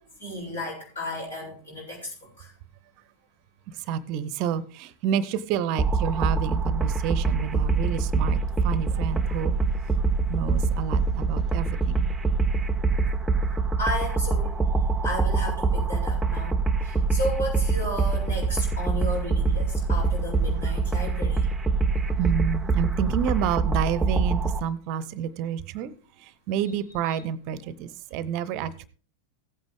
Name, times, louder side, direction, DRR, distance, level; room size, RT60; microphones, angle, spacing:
voice 1, 0.2-2.5 13.8-14.6 15.0-16.6 16.8-21.5 27.1-27.2, left 1 dB, 70° left, -2 dB, 6.8 m, -33 dB
voice 2, 3.9-9.6 10.3-12.1 20.6-20.7 22.2-25.9 26.5-28.9, right 9 dB, 45° right, 19 dB, 0.7 m, -29 dB
sound 1, 5.8-24.6, right 4 dB, 10° right, 0.7 m, -25 dB
15.5 x 8.9 x 3.5 m, 0.40 s
figure-of-eight pair, 90°, 0 cm